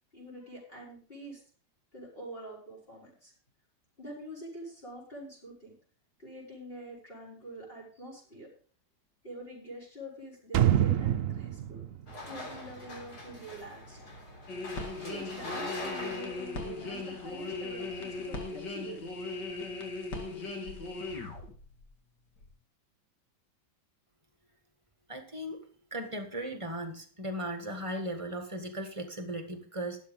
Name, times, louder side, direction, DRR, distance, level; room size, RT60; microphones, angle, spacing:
voice 1, 0.1-1.4 1.9-3.3 4.0-5.7 6.2-8.5 9.2-11.8 12.3-14.0 15.0-19.2, right 1 dB, 30° left, -4 dB, 6.1 m, -46 dB
sound 1, 10.5-13.4 13.7-13.8, right 11 dB, 60° right, 0.9 m, -28 dB
sound 2, 12.1-18.5, left 1 dB, 65° left, 3.9 m, -44 dB
sound 3, 14.5-21.9 22.4-22.5, left 3 dB, 80° left, 2.6 m, -38 dB
voice 2, 25.1-25.6 25.9-30.0, right 1 dB, 20° right, 5 dB, 1.7 m, -37 dB
12.5 x 8.0 x 5.3 m, 0.43 s
omnidirectional pair, 1.9 m